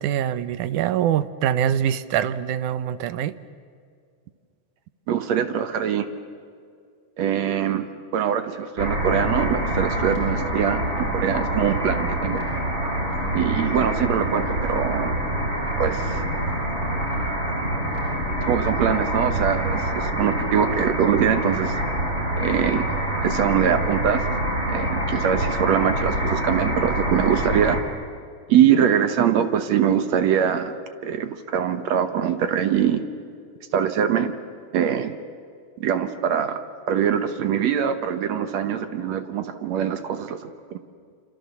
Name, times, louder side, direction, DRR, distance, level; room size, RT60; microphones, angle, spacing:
voice 1, 0.0-3.3, right 10 dB, 80° right, 14 dB, 2.3 m, -24 dB
voice 2, 5.1-6.1 7.2-7.9 8.1-12.4 13.3-15.1 15.8-16.2 18.4-21.7 22.4-22.8 23.2-24.2 24.7-27.8 28.5-30.7 31.0-33.0 33.7-34.4 34.7-35.2 35.8-36.6 36.9-40.8, right 8 dB, 65° right, 9 dB, 2.2 m, -23 dB
sound 1, 8.8-27.8, right 1 dB, 20° right, 3.5 m, -26 dB
27.0 x 27.0 x 7.0 m, 2.2 s
omnidirectional pair, 3.5 m